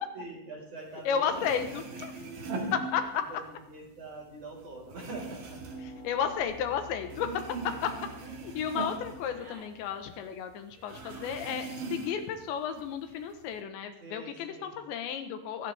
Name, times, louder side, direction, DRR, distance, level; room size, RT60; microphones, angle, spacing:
voice 1, 0.1-1.6 1.9-5.8 7.6-7.9 11.7-12.0 14.0-14.8, right 2 dB, 35° right, -1 dB, 5.5 m, -45 dB
sound 1, 1.0-1.1 1.3-3.5 3.8-6.8 7.1-10.1 10.3-10.4 10.9-12.4 12.8-13.5, right 3 dB, 55° right, 3.2 m, -40 dB
voice 2, 1.1-2.1 2.7-3.0 5.8-7.3 7.8-7.9 8.2-15.7, left 8 dB, 80° left, 7 dB, 3.4 m, -33 dB
sound 2, 3.1-9.7, equal, 55° left, 7.1 m, -52 dB
sound 3, 7.9-8.3 9.2-9.7 10.8-11.4, equal, 20° right, 3.0 m, -53 dB
23.0 x 18.0 x 3.5 m, 0.90 s
omnidirectional pair, 5.1 m